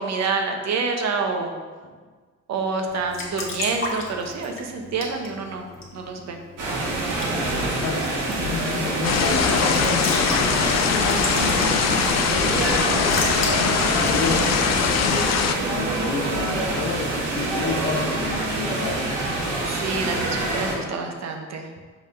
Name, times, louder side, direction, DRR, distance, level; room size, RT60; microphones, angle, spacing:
voice 1, 0.0-1.5 2.5-6.4 19.7-21.7, right 4 dB, 60° right, 3 dB, 0.9 m, -27 dB
Raindrop / Drip / Trickle dribble, 2.9-15.3, left 2 dB, 45° left, 1.5 m, -35 dB
sound 1, 6.6-20.8, right 2 dB, 85° right, 1.4 m, -26 dB
voice 2, 7.3-12.7 13.3-14.6 14.9-19.1, left 4 dB, 80° left, 2 dB, 1.0 m, -30 dB
sound 2, 9.0-15.5, left 7 dB, 60° left, 0.5 m, -22 dB
5.5 x 3.5 x 5.2 m, 1.4 s
cardioid pair, 90°, 30 cm